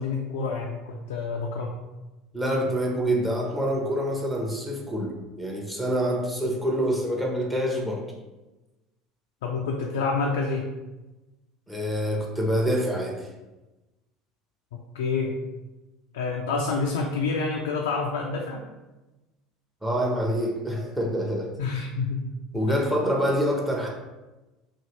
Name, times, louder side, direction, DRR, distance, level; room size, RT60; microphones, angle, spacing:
voice 1, 0.0-1.7 9.4-10.7 14.7-15.4 16.1-18.6 21.6-22.3 22.7-22.8, left 4 dB, 75° left, 1 dB, 0.3 m, -28 dB
voice 2, 2.3-8.0 11.7-13.3 19.8-21.5 22.5-23.9, equal, 10° right, -1 dB, 0.8 m, -26 dB
2.7 x 2.4 x 3.2 m, 1.1 s
hypercardioid pair, 70°, 0 cm